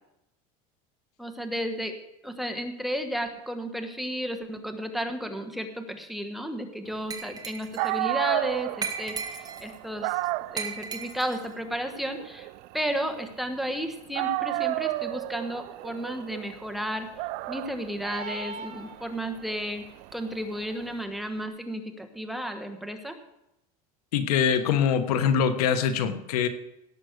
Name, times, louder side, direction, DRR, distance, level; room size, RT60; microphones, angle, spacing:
voice 1, 1.2-2.0 2.2-10.2 10.5-17.1 17.5-19.8 20.1-23.2, equal, ahead, 7 dB, 1.2 m, -33 dB
Glass, 7.1-7.9 8.8-9.8 10.6-11.5, right 5 dB, 20° right, 1.2 m, -35 dB
Dog, 7.5-7.6 7.8-13.8 14.1-20.9, right 19 dB, 55° right, 0.5 m, -33 dB
sound 1, 18.0-19.5, right 4 dB, 75° right, 2.0 m, -39 dB
voice 2, 24.1-26.5, left 7 dB, 90° left, 10 dB, 1.3 m, -23 dB
17.0 x 6.2 x 6.5 m, 0.88 s
supercardioid pair, 135°, 19 cm